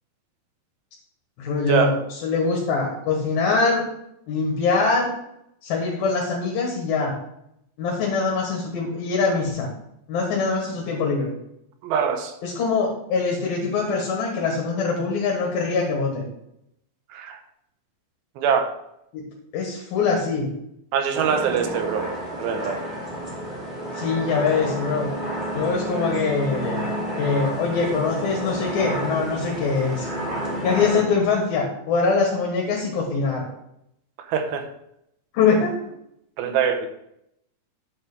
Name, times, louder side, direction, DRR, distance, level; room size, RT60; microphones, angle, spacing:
voice 1, 1.4-3.8 4.3-5.1 5.6-7.1 7.8-9.7 10.1-11.3 12.4-16.2 19.1-19.3 19.5-20.5 23.9-25.1 25.5-30.1 30.6-33.4 35.3-35.7 36.4-36.5, left 4 dB, 80° left, 0 dB, 3.4 m, -23 dB
voice 2, 11.8-12.3 17.1-17.4 18.4-18.7 20.9-22.1 22.4-22.8 34.3-34.6 36.4-36.9, right 7 dB, 85° right, 6 dB, 2.9 m, -23 dB
sound 1, 21.1-31.0, right 1 dB, 20° right, 2.8 m, -30 dB
9.3 x 4.7 x 6.6 m, 0.78 s
omnidirectional pair, 4.2 m